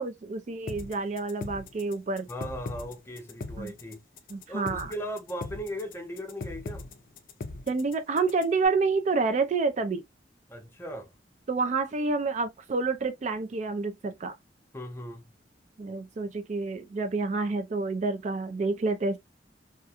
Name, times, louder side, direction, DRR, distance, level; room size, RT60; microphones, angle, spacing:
voice 1, 0.0-2.3 3.6-3.7 4.3-4.9 7.7-10.0 11.5-14.3 15.8-19.2, right 4 dB, 40° right, 0.3 m, -28 dB
sound 1, 0.7-8.7, left 3 dB, 50° left, 0.4 m, -39 dB
voice 2, 2.3-4.0 4.5-6.9 10.5-11.1 14.7-15.2, equal, 15° left, 0.6 m, -38 dB
2.3 x 2.2 x 2.7 m
head